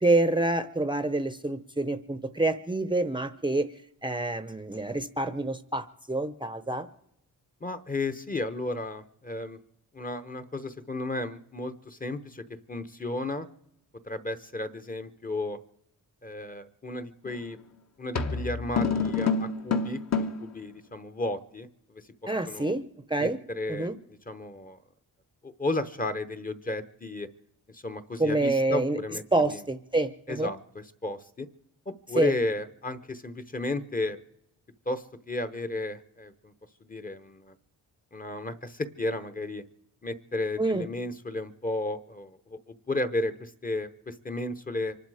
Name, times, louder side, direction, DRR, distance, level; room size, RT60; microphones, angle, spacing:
voice 1, 0.0-3.7 4.0-6.9 22.3-22.8 23.1-23.4 23.7-24.0 28.2-29.0 29.3-30.5 32.1-32.3 40.6-40.9, right 2 dB, 15° right, 11 dB, 0.7 m, -27 dB
voice 2, 7.6-9.6 9.9-13.5 14.0-15.6 16.2-17.6 18.0-22.0 22.5-22.7 23.2-23.9 24.3-24.8 25.4-27.3 27.7-29.2 29.5-29.6 30.3-31.5 32.1-34.2 34.9-36.5 36.8-37.5 38.1-39.6 40.0-45.0, left 2 dB, 25° left, 9 dB, 0.9 m, -33 dB
sound 1, 17.3-17.5 18.1-20.5, left 5 dB, 45° left, 1.2 m, -27 dB
25.0 x 12.0 x 4.9 m, 0.78 s
wide cardioid pair, 130°, 37 cm